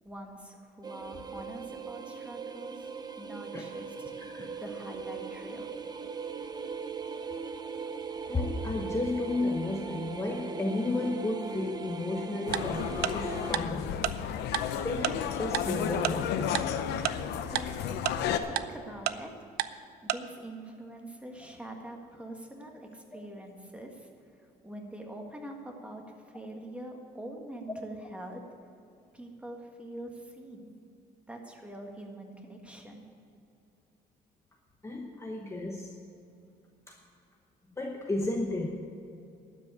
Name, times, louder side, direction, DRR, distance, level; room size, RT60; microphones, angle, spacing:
voice 1, 0.0-2.9 3.2-3.9 4.6-5.7 17.5-17.7 18.4-19.3 19.7-24.1 24.6-28.4 29.1-30.8 31.3-33.1, right 1 dB, 5° right, 2 dB, 1.7 m, -44 dB
sound 1, 0.8-13.5, right 5 dB, 25° right, 0.8 m, -39 dB
voice 2, 4.2-4.6 8.3-14.0 14.7-16.3 23.1-23.2 34.8-35.9 36.9-37.0 37.8-38.7, left 2 dB, 15° left, 1 dB, 1.0 m, -33 dB
sound 2, 12.5-18.4, left 9 dB, 80° left, 0.8 m, -32 dB
Tick-tock, 12.5-12.6 13.0-13.1 13.5-13.6 14.0-14.1 14.5-14.6 15.0-15.1 15.5-15.6 16.0-16.1 16.5-16.6 17.0-17.1 17.6-17.7 18.1-18.2 18.6-18.7 19.1-19.2 19.6-19.7 20.1-20.2, right 14 dB, 70° right, 0.5 m, -28 dB
12.0 x 6.3 x 9.5 m, 2.5 s
cardioid pair, 110°, 17 cm